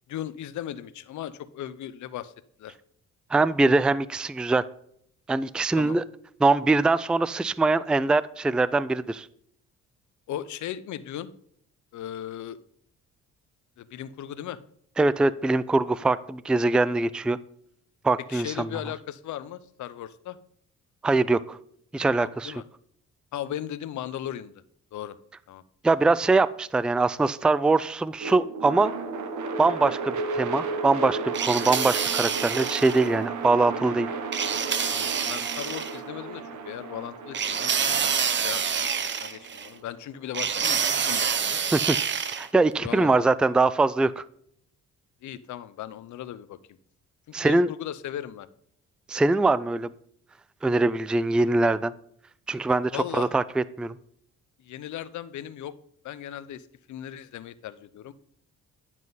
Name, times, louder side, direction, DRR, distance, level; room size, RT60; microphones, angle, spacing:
voice 1, 0.1-2.3 2.6-2.8 5.8-6.0 10.3-11.3 11.9-12.6 13.8-14.6 18.3-20.4 22.2-22.6 23.3-24.6 24.9-25.2 25.5-25.6 34.9-41.6 42.8-43.3 45.2-46.6 47.3-48.5 52.9-53.3 54.6-55.7 56.0-58.1, left 11 dB, 70° left, 14 dB, 0.8 m, -37 dB
voice 2, 3.3-4.6 5.3-6.0 6.4-9.3 15.0-17.4 18.0-18.7 21.0-21.6 21.9-22.5 25.8-28.9 29.6-34.1 41.7-42.0 42.4-44.2 47.3-47.7 49.1-49.9 50.6-51.9 52.5-53.9, right 3 dB, 5° right, 17 dB, 0.3 m, -23 dB
sound 1, 28.2-40.3, right 4 dB, 75° right, 1.3 m, -34 dB
sound 2, 31.3-33.1 34.3-36.0 37.3-39.7 40.3-42.5, right 7 dB, 40° right, 0.8 m, -27 dB
10.5 x 7.4 x 4.0 m, 0.67 s
cardioid pair, 90°, 30 cm